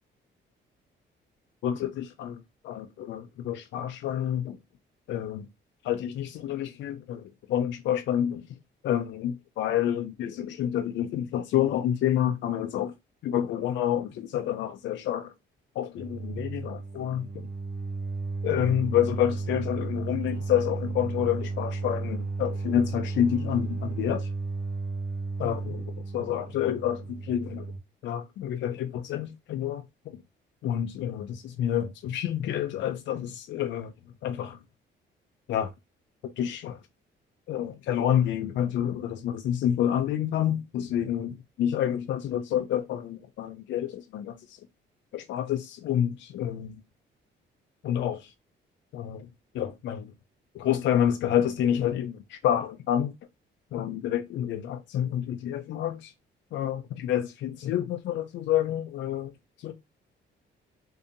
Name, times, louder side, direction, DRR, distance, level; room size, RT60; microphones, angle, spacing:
voice 1, 1.6-4.6 5.1-5.5 5.8-8.5 8.8-12.9 13.2-15.3 15.8-17.5 18.4-24.3 25.4-27.7 28.0-30.2 30.6-33.9 34.2-34.6 35.5-35.7 36.2-36.8 37.5-44.6 45.1-46.8 47.8-48.3 48.9-49.3 49.5-50.1 50.5-53.1 53.7-56.1 56.5-59.3 59.6-59.7, left 10 dB, 70° left, 0.4 m, -28 dB
sound 1, 16.0-27.8, right 3 dB, 60° right, 0.7 m, -33 dB
2.7 x 2.5 x 2.5 m
cardioid pair, 90°, 20 cm